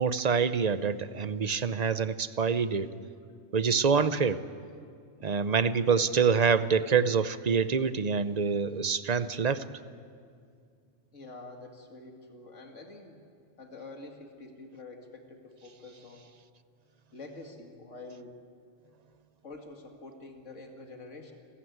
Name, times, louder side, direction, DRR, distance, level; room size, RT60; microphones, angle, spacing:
voice 1, 0.0-2.9 3.5-4.4 5.2-9.6, right 6 dB, 40° right, 13 dB, 0.8 m, -26 dB
voice 2, 11.1-13.2 13.6-16.3 17.1-18.4 19.4-21.3, left 2 dB, 85° left, 2 dB, 2.5 m, -47 dB
30.0 x 14.5 x 9.4 m, 2.2 s
omnidirectional pair, 1.2 m